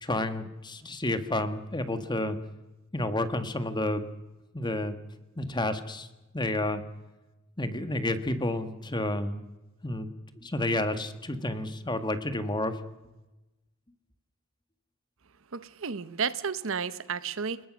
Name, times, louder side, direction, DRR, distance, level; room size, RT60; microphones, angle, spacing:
voice 1, 0.0-2.4 2.9-4.0 4.5-5.0 5.4-6.1 6.3-6.8 7.6-9.4 9.8-10.1 10.4-12.8, left 1 dB, 20° left, 1.6 m, -30 dB
voice 2, 15.5-17.6, right 6 dB, 65° right, 0.9 m, -32 dB
29.0 x 19.5 x 6.3 m
head